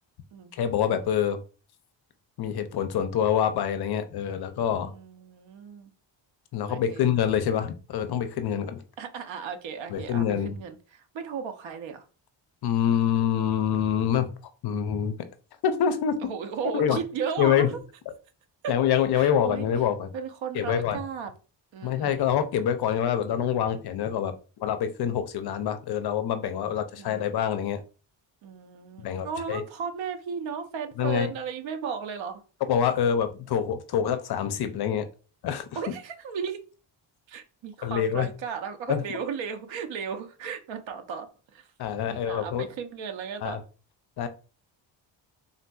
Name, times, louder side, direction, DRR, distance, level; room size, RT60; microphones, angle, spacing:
voice 1, 0.5-1.4 2.4-4.9 6.5-8.8 9.9-10.5 12.6-14.3 14.6-15.1 15.6-16.2 16.7-17.0 17.4-17.7 18.7-20.1 20.5-21.0 21.8-27.8 29.0-29.6 31.0-31.3 32.7-35.0 35.4-35.7 37.8-38.3 38.9-39.0 41.8-42.6 43.4-43.6 44.2-44.3, left 9 dB, 60° left, 10 dB, 0.5 m, -26 dB
voice 2, 4.8-5.9 6.7-7.1 9.0-12.0 16.2-17.8 18.6-18.8 19.1-19.7 20.1-21.3 21.7-22.3 27.0-27.4 28.4-32.4 35.8-36.6 37.3-41.7 42.1-43.6, right 6 dB, 80° right, 7 dB, 0.7 m, -35 dB
3.7 x 2.6 x 2.2 m, 0.35 s
wide cardioid pair, 155°, 45 cm